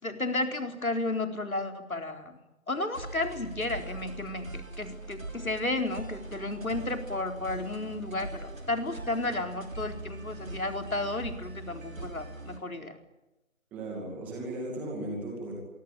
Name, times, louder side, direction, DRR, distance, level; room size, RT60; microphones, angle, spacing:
voice 1, 0.0-2.4 2.7-13.0, left 2 dB, 80° left, 5 dB, 4.3 m, -33 dB
sound 1, 2.9-12.6, right 2 dB, 70° right, 5.6 m, -42 dB
voice 2, 13.7-15.5, right 1 dB, 5° right, 0 dB, 2.3 m, -36 dB
26.5 x 21.5 x 8.8 m, 0.97 s
figure-of-eight pair, 165°, 42 cm